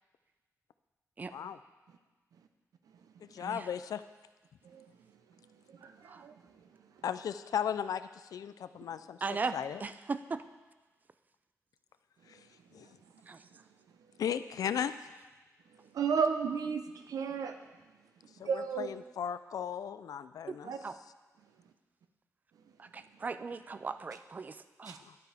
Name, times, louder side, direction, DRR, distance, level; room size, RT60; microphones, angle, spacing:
voice 1, 1.3-1.6 3.2-4.0 7.0-9.2 9.5-9.8 12.3-12.4 12.7-12.9 14.2-15.2 18.4-20.7 25.0-25.2, left 8 dB, 85° left, 13 dB, 0.4 m, -36 dB
voice 2, 5.8-6.3 15.9-17.6 18.5-18.9 20.6-20.8 24.9-25.0, right 6 dB, 90° right, 7 dB, 0.7 m, -33 dB
voice 3, 9.2-9.6 9.8-10.4 13.3-13.4 20.5-20.6 20.8-21.0 22.8-25.0, right 4 dB, 30° right, 12 dB, 0.3 m, -37 dB
11.5 x 8.3 x 3.4 m, 1.2 s
wide cardioid pair, 155°, 6 cm